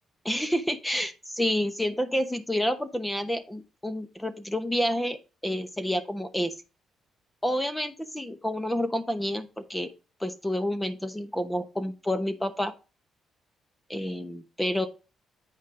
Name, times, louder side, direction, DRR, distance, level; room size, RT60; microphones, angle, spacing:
voice 1, 0.2-5.2 5.4-6.5 7.4-9.9 10.2-12.7 13.9-14.9, equal, 10° left, 9 dB, 1.0 m, -29 dB
9.1 x 5.2 x 3.8 m, 0.30 s
cardioid pair, 125°, 0 cm